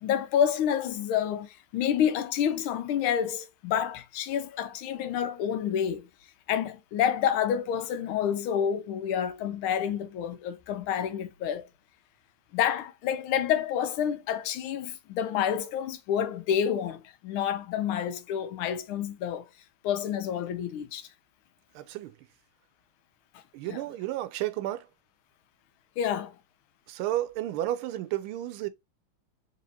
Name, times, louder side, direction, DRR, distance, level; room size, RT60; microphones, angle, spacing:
voice 1, 0.0-6.1 6.5-11.7 12.5-19.5 19.8-21.1 23.6-23.8 26.0-26.4, left 9 dB, 85° left, 1.5 m, -28 dB
voice 2, 21.7-22.1 23.5-24.9 26.9-28.7, right 14 dB, 85° right, 1.4 m, -32 dB
4.1 x 3.3 x 2.7 m
omnidirectional pair, 2.3 m